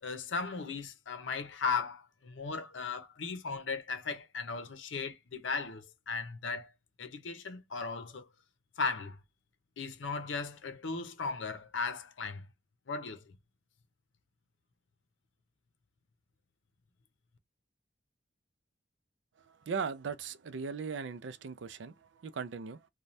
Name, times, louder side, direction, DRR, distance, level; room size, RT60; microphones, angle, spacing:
voice 1, 0.0-6.7 7.0-8.3 8.8-9.2 9.8-12.5 12.9-13.3, left 4 dB, 85° left, 0.7 m, -37 dB
voice 2, 19.4-22.9, right 5 dB, 75° right, 0.4 m, -39 dB
3.1 x 2.2 x 2.6 m
head